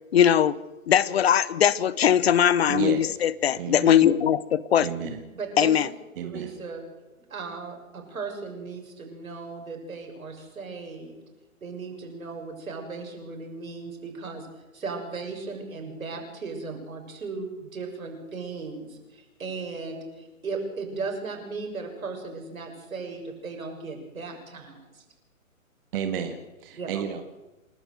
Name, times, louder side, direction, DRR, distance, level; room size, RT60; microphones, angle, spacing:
voice 1, 0.1-0.6 0.9-4.9 5.6-5.9, left 9 dB, 45° left, 20 dB, 0.9 m, -20 dB
voice 2, 2.7-3.1 3.6-4.1 4.8-5.2 6.2-6.5 25.9-27.2, right 8 dB, 40° right, 5 dB, 2.0 m, -32 dB
voice 3, 5.3-5.7 6.2-6.8 7.3-11.2 11.6-14.5 14.7-25.0 26.8-27.0, right 4 dB, 75° right, 3 dB, 6.8 m, -36 dB
28.5 x 12.5 x 7.9 m, 1.1 s
hypercardioid pair, 140°, 42 cm